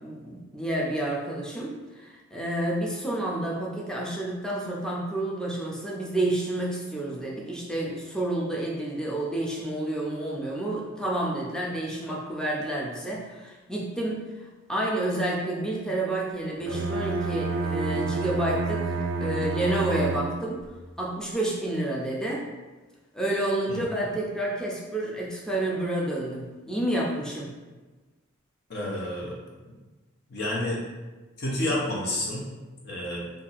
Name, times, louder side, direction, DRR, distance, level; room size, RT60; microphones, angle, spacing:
voice 1, 0.0-20.6 21.0-22.4 23.1-27.5, right 1 dB, 5° left, -4 dB, 0.5 m, -29 dB
Bowed string instrument, 16.6-20.7, right 3 dB, 85° right, 0.4 m, -29 dB
voice 2, 28.7-29.3 29.6-29.7 30.3-30.8 31.4-32.4 32.8-33.2, left 1 dB, 55° left, -3 dB, 0.8 m, -29 dB
2.7 x 2.4 x 4.0 m, 1.2 s
head